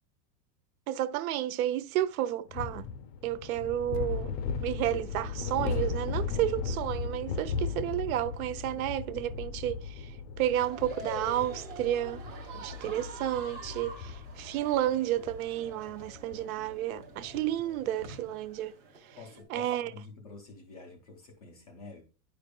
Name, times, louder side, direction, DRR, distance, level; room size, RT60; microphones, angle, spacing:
voice 1, 0.9-2.8 3.2-4.3 4.6-9.8 10.4-12.2 12.5-18.7 19.5-19.9, right 12 dB, 60° right, 0.5 m, -31 dB
sound 1, 2.5-18.3, left 5 dB, 80° left, 0.8 m, -38 dB
sound 2, 3.9-14.9, left 5 dB, 50° left, 0.7 m, -44 dB
sound 3, 10.4-19.4, right 3 dB, 20° right, 0.6 m, -46 dB
voice 2, 19.2-22.0, left 3 dB, 25° left, 0.3 m, -48 dB
9.1 x 5.1 x 2.2 m
supercardioid pair, 170°, 50 cm